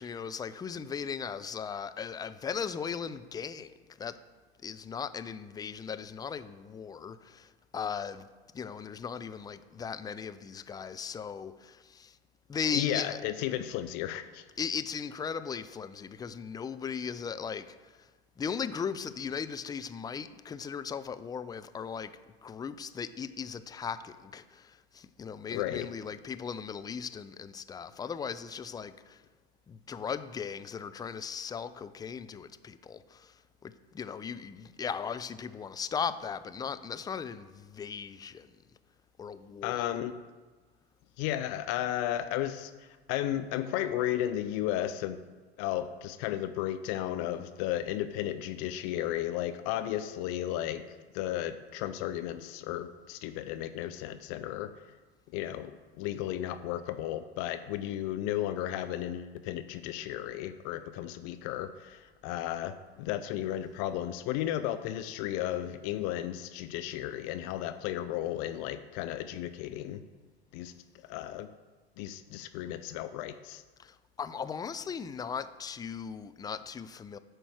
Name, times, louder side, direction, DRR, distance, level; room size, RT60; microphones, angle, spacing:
voice 1, 0.0-3.7 4.0-4.2 4.6-8.3 8.5-12.2 12.5-13.2 14.6-18.1 18.4-22.1 22.4-29.2 29.7-38.5 39.2-39.8 73.8-77.2, left 6 dB, 10° left, 0.4 m, -38 dB
voice 2, 12.7-14.4 25.5-25.9 39.6-40.1 41.2-45.2 45.6-50.8 51.1-54.7 55.3-70.0 70.5-70.7 71.1-71.5 72.0-73.6, left 12 dB, 50° left, 0.6 m, -34 dB
11.0 x 4.6 x 6.3 m
hypercardioid pair, 85°, 32 cm